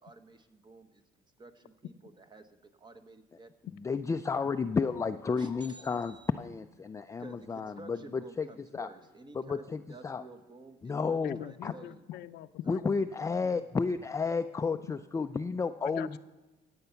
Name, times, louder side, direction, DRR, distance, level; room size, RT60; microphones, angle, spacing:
voice 1, 0.0-3.5 5.4-6.3 7.2-12.0, right 2 dB, 25° right, 9 dB, 1.2 m, -52 dB
voice 2, 3.8-8.5 8.7-8.9 9.3-10.2 10.8-11.7 12.7-16.2, left 5 dB, 20° left, 8 dB, 0.4 m, -32 dB
voice 3, 11.2-13.6 15.8-16.2, left 13 dB, 75° left, 13 dB, 0.6 m, -43 dB
16.5 x 8.1 x 5.7 m, 1.1 s
cardioid pair, 110°, 17 cm